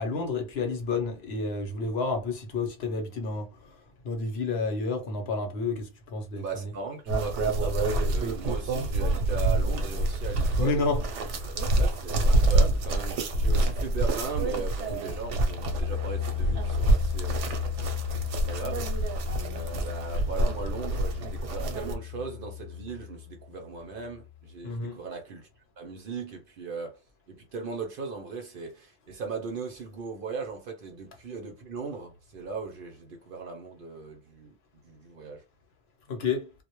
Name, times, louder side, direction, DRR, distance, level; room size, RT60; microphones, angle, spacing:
voice 1, 0.0-6.7 10.6-11.6 24.6-25.0 36.1-36.5, left 3 dB, 65° left, 0.9 m, -30 dB
voice 2, 6.4-10.8 11.7-17.5 18.5-19.2 19.5-25.5 25.8-27.0 27.3-34.6 34.8-35.4, right 4 dB, 60° right, 0.6 m, -38 dB
sound 1, 7.1-21.9, right 2 dB, 90° right, 1.0 m, -27 dB
Truck, 8.2-14.3, left 3 dB, 5° left, 0.5 m, -46 dB
sound 2, 14.9-24.5, left 11 dB, 35° left, 0.8 m, -35 dB
2.1 x 2.0 x 2.9 m
omnidirectional pair, 1.2 m